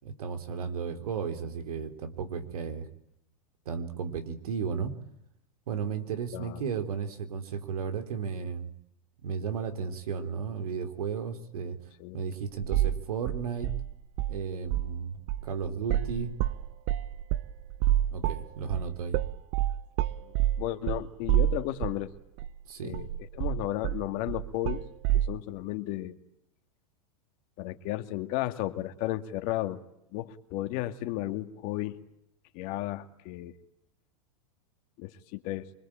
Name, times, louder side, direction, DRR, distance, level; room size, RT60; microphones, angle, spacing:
voice 1, 0.0-2.9 3.7-4.9 5.7-8.7 9.2-11.8 12.1-13.7 14.3-16.3 18.1-19.2 22.7-23.0, right 6 dB, 90° right, 9 dB, 3.8 m, -34 dB
sound 1, 12.6-13.0 13.3-14.4 14.6-15.0 15.3-22.1 22.4-22.5 22.9-25.3, right 13 dB, 50° right, 1.2 m, -28 dB
voice 2, 20.2-22.1 22.8-24.8 25.1-26.2 27.6-29.8 30.1-32.0 32.5-33.6 35.0-35.6, left 15 dB, 50° left, 8 dB, 2.3 m, -34 dB
25.5 x 22.0 x 8.9 m, 0.79 s
supercardioid pair, 130°, 18 cm